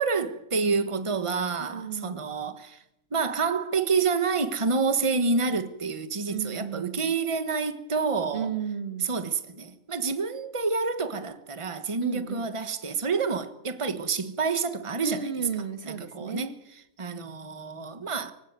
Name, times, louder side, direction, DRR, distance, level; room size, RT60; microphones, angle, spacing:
voice 1, 0.0-2.8 3.1-8.5 9.0-15.3 15.8-18.3, right 4 dB, 25° right, 1.4 m, -28 dB
voice 2, 1.6-2.3 6.3-7.1 8.3-9.1 12.0-12.5 15.0-16.6, right 6 dB, 50° right, 1.9 m, -34 dB
24.5 x 16.5 x 9.5 m
omnidirectional pair, 1.4 m